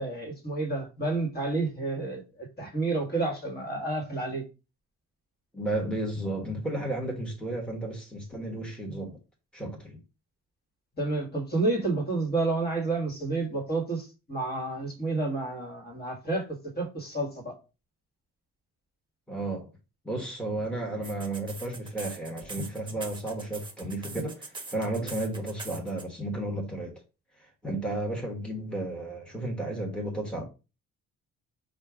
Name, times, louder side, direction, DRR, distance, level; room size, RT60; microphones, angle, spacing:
voice 1, 0.0-4.4 8.9-9.0 11.0-17.5 25.0-25.1, right 2 dB, 30° left, 1.8 m, -30 dB
voice 2, 5.5-9.2 9.5-10.0 19.3-19.7 20.0-26.9 27.4-30.4, right 1 dB, 5° left, 1.5 m, -33 dB
sound 1, 21.0-26.0, right 3 dB, 15° right, 1.1 m, -42 dB
4.4 x 2.4 x 4.9 m
cardioid pair, 90°, 30 cm